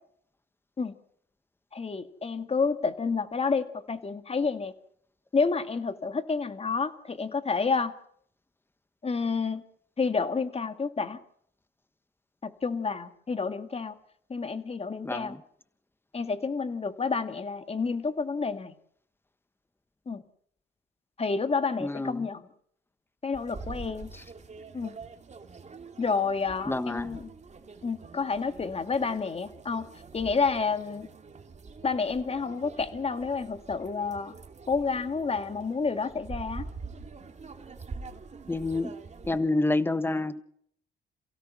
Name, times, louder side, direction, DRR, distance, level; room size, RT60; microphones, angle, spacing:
voice 1, 1.7-4.7 5.3-7.9 9.0-9.6 10.0-11.2 12.4-13.9 14.3-15.3 16.1-18.7 20.1-20.2 21.2-22.4 23.2-24.1 24.7-25.0 26.0-27.2 27.8-29.9 30.1-31.1 31.8-34.3 34.7-36.6, left 4 dB, 30° left, 9 dB, 2.0 m, -29 dB
voice 2, 15.0-15.4 21.8-22.3 24.1-24.2 26.6-27.2 38.5-38.9 39.2-40.4, left 2 dB, 10° left, 13 dB, 1.4 m, -28 dB
sound 1, 23.3-39.4, right 4 dB, 35° right, 2.5 m, -45 dB
28.0 x 16.5 x 6.1 m, 0.65 s
cardioid pair, 90°, 20 cm